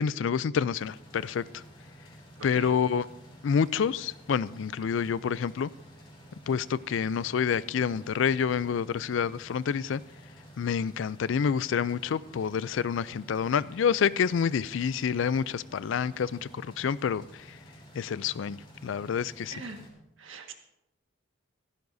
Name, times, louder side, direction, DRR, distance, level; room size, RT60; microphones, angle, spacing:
voice 1, 0.0-1.6 2.4-3.0 3.4-5.7 6.5-10.0 10.6-16.4 16.8-17.2 17.9-19.5, left 7 dB, 75° left, 0.4 m, -28 dB
sound 1, 0.8-19.9, equal, 25° left, 3.2 m, -51 dB
voice 2, 2.4-2.8 19.5-19.8 20.2-20.5, right 3 dB, 85° right, 1.6 m, -42 dB
16.0 x 15.5 x 2.7 m
head